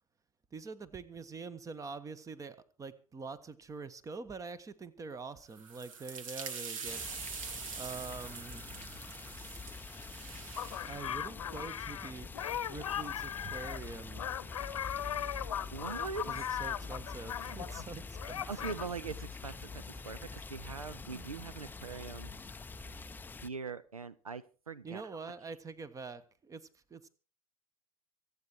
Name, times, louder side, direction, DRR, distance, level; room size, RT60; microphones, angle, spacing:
voice 1, 0.5-7.4 7.8-9.0 10.8-12.3 12.7-14.4 16.3-18.4 21.1-21.3 24.8-27.1, right 4 dB, 20° right, 1.3 m, -45 dB
sound 1, 5.5-10.9, right 5 dB, 65° right, 1.9 m, -44 dB
sound 2, 6.8-23.5, left 4 dB, 10° left, 0.6 m, -46 dB
sound 3, 10.6-17.9 18.2-18.8, left 10 dB, 70° left, 0.9 m, -38 dB
voice 2, 15.7-16.5 18.5-22.3 23.0-23.1 23.4-25.0, right 5 dB, 80° right, 0.7 m, -42 dB
25.0 x 8.6 x 4.5 m
figure-of-eight pair, 80°, 18 cm